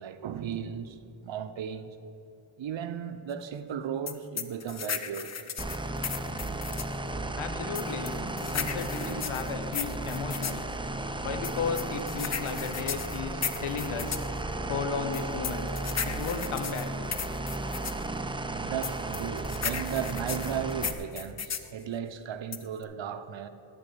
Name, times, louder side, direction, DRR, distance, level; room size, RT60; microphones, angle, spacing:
voice 1, 0.0-2.0 2.6-5.5 18.5-23.5, right 8 dB, 65° right, 0.7 m, -36 dB
sound 1, 4.1-7.0 7.8-10.6 11.4-14.3 15.1-18.0 18.8-21.7 22.5-22.8, left 7 dB, 35° left, 0.6 m, -35 dB
sound 2, 5.6-20.9, right 2 dB, 10° right, 0.5 m, -34 dB
voice 2, 7.4-8.2 8.5-10.6 11.2-14.2 14.7-15.7 16.1-16.9, left 6 dB, 80° left, 0.9 m, -34 dB
12.5 x 4.5 x 6.7 m
cardioid pair, 65°, 48 cm